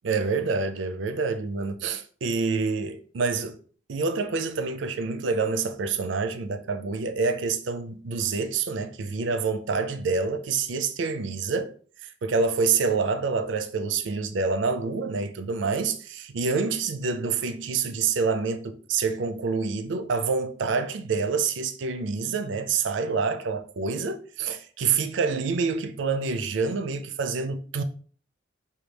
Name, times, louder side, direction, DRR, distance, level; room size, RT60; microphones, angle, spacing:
voice 1, 0.0-3.6 3.9-11.7 12.0-27.8, right 4 dB, 80° right, 0.4 m, -27 dB
4.5 x 2.3 x 3.3 m
head